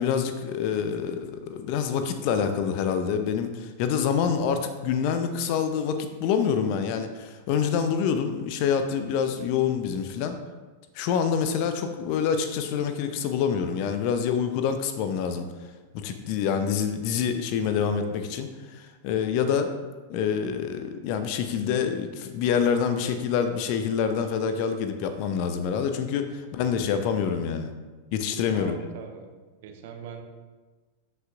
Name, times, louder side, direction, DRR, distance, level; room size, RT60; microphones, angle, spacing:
voice 1, 0.0-10.4 10.9-15.5 15.9-19.7 20.1-27.7 28.1-28.7, left 7 dB, 45° left, 8 dB, 0.7 m, -26 dB
voice 2, 17.8-18.2 26.6-27.0 28.4-29.3 29.6-30.2, right 6 dB, 50° right, 4 dB, 1.0 m, -43 dB
13.0 x 5.7 x 2.5 m, 1.3 s
figure-of-eight pair, 90°, 0 cm